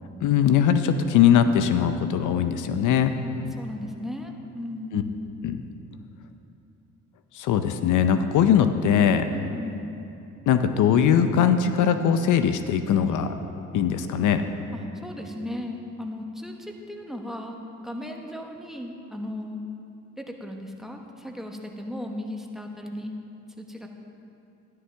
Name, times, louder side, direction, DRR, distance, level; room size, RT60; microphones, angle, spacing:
voice 1, 0.2-3.2 4.9-5.0 5.4-5.6 7.3-9.3 10.5-13.3 13.7-14.4, left 8 dB, 80° left, 9 dB, 0.6 m, -21 dB
voice 2, 3.2-5.2 9.3-9.9 14.7-19.6 20.2-23.1 23.6-23.9, left 1 dB, ahead, 2 dB, 1.1 m, -36 dB
13.0 x 11.0 x 3.4 m, 2.8 s
cardioid pair, 90°, 30 cm